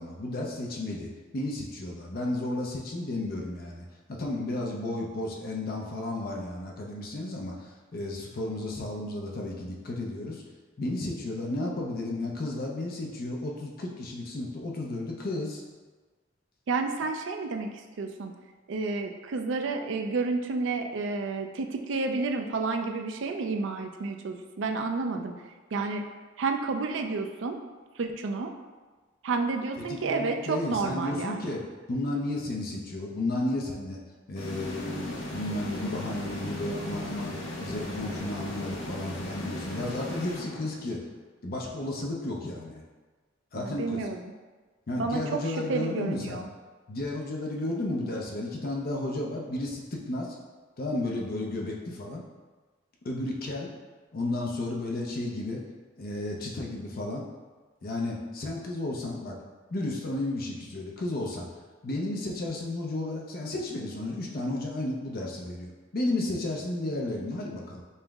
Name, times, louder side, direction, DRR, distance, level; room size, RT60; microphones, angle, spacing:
voice 1, 0.0-10.4 10.8-15.6 29.9-31.6 31.9-34.0 34.3-37.3 37.6-41.0 41.4-42.8 43.5-44.1 44.9-46.4 46.9-50.4 50.8-52.2 53.0-53.7 54.1-55.6 56.0-57.2 57.8-59.4 59.7-61.5 61.8-67.8, left 2 dB, 50° left, -1 dB, 0.5 m, -33 dB
voice 2, 16.7-17.7 18.0-18.3 18.7-25.3 25.7-26.0 26.4-27.6 28.0-28.5 29.2-31.6 43.5-44.2 45.0-45.2 45.7-46.5, right 3 dB, 70° right, 4 dB, 0.4 m, -30 dB
sound 1, 34.4-41.1, left 1 dB, 85° left, 0.8 m, -37 dB
5.4 x 2.0 x 3.4 m, 1.3 s
head